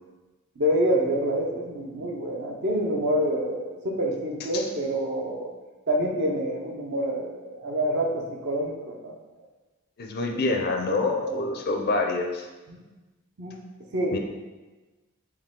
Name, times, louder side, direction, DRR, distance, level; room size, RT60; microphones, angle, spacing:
voice 1, 0.6-5.5 5.9-9.1 10.3-11.0 11.2-11.4 12.7-12.8 13.4-13.5 13.9-14.2, equal, 55° right, 0 dB, 0.7 m, -27 dB
voice 2, 10.0-12.5 14.1-14.2, left 3 dB, 45° left, 3 dB, 0.5 m, -26 dB
4.7 x 3.1 x 3.6 m, 1.2 s
head